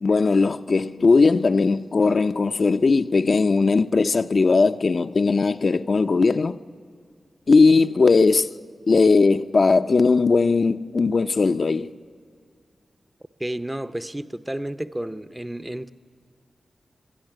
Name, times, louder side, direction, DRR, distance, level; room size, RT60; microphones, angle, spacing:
voice 1, 0.0-6.6 7.5-8.5 8.9-11.9, left 4 dB, 60° left, 0.5 m, -19 dB
voice 2, 13.4-15.9, right 1 dB, 15° right, 0.6 m, -31 dB
21.0 x 12.5 x 9.9 m
wide cardioid pair, 75°, 0 cm